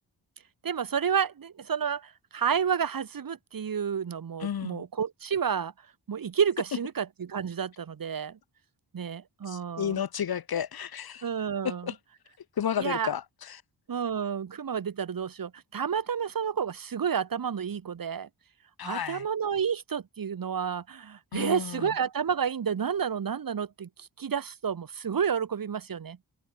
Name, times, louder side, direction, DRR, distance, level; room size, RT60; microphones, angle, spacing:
voice 1, 0.6-5.7 6.1-8.4 8.9-10.0 11.2-11.9 12.8-13.1 13.9-18.3 18.8-26.2, right 7 dB, 60° right, 4.3 m, -30 dB
voice 2, 4.4-4.8 9.5-11.3 11.6-12.0 12.6-13.6 18.8-19.3 21.3-21.9, left 8 dB, 65° left, 2.2 m, -32 dB
wide cardioid pair, 130°, 39 cm